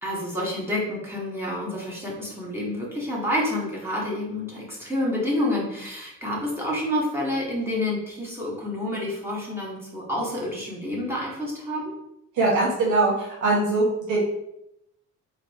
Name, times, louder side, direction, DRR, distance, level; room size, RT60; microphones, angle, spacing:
voice 1, 0.0-11.9, left 1 dB, 10° right, -5 dB, 1.5 m, -28 dB
voice 2, 12.3-14.2, right 2 dB, 80° right, -5 dB, 1.2 m, -22 dB
3.9 x 3.0 x 3.5 m, 0.80 s
cardioid pair, 90°, 30 cm